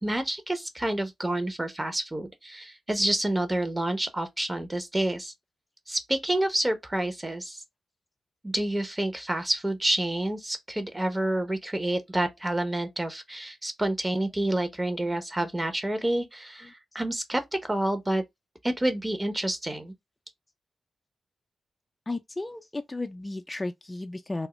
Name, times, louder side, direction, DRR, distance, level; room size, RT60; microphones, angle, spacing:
voice 1, 0.0-5.3 5.9-7.6 8.4-18.2 18.6-19.9, right 1 dB, 20° right, 0.9 m, -28 dB
voice 2, 22.1-24.5, left 2 dB, 25° left, 0.4 m, -34 dB
3.4 x 2.1 x 3.1 m
supercardioid pair, 40°, 0 cm